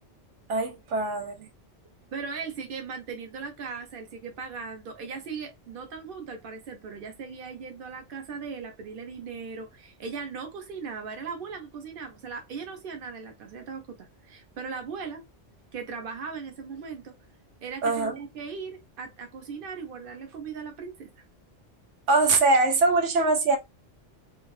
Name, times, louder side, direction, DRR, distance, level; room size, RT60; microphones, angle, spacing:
voice 1, 0.5-1.5 17.8-18.2 22.1-23.6, right 3 dB, 85° right, 1.0 m, -23 dB
voice 2, 2.1-15.2 15.7-17.1 17.6-21.1, right 5 dB, 50° right, 0.9 m, -38 dB
2.7 x 2.4 x 3.1 m
omnidirectional pair, 1.2 m